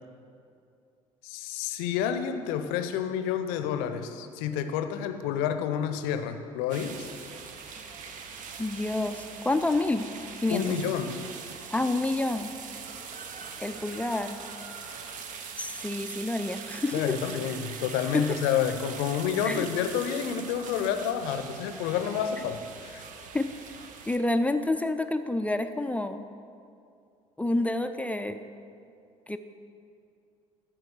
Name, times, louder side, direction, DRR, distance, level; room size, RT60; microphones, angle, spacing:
voice 1, 1.2-7.1 10.5-11.1 16.9-23.0, left 8 dB, 65° left, 9 dB, 0.7 m, -29 dB
sound 1, 6.7-24.2, right 6 dB, 50° right, 0.8 m, -42 dB
voice 2, 8.6-10.1 10.4-10.7 11.7-12.5 13.6-14.4 15.6-17.2 18.1-18.3 19.5-19.7 23.3-23.5 24.1-26.3 27.4-28.4 29.3-29.4, left 2 dB, 10° left, 8 dB, 0.4 m, -28 dB
12.5 x 4.7 x 6.4 m, 2.4 s
figure-of-eight pair, 55°, 17 cm